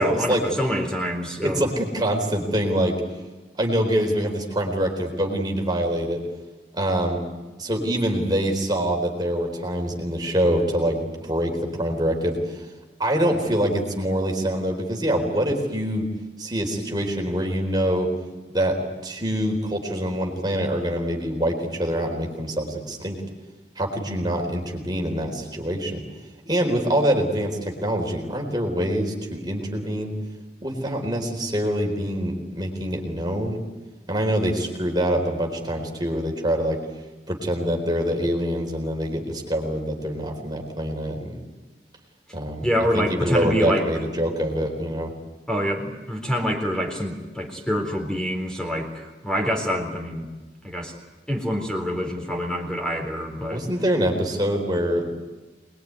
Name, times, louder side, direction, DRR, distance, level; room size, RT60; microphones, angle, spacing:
voice 1, 0.0-1.7 42.6-43.9 45.5-50.3 50.6-50.9 51.3-53.6, equal, 5° left, 2 dB, 4.0 m, -26 dB
voice 2, 1.4-3.0 3.6-6.2 6.7-7.2 7.6-12.7 13.0-16.1 16.4-18.1 18.5-23.2 23.8-26.0 26.5-30.1 30.6-33.6 34.1-36.8 37.3-41.4 42.3-42.7 42.9-45.1 53.5-55.1, equal, 25° right, 2 dB, 4.0 m, -25 dB
26.0 x 21.5 x 9.6 m, 1.2 s
head